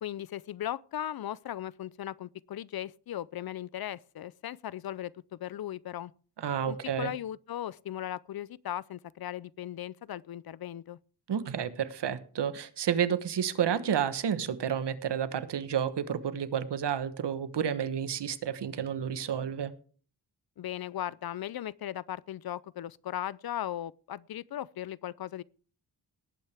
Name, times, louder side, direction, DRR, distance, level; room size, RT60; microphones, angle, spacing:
voice 1, 0.0-6.1 6.7-11.0 20.6-25.4, left 11 dB, 65° left, 0.5 m, -37 dB
voice 2, 6.4-7.1 11.3-19.7, right 8 dB, 85° right, 1.2 m, -30 dB
18.5 x 8.8 x 3.4 m
wide cardioid pair, 130°, 40 cm